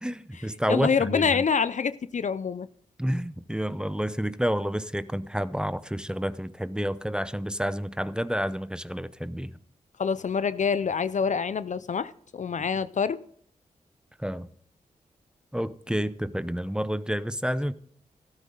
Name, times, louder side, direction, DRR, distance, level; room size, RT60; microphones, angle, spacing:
voice 1, 0.0-1.4 3.0-9.6 12.6-12.7 14.2-14.5 15.5-17.7, equal, 5° right, 0.7 m, -29 dB
voice 2, 0.7-2.7 10.0-13.2, left 6 dB, 55° left, 0.5 m, -26 dB
13.5 x 12.5 x 3.8 m
supercardioid pair, 40°, 15 cm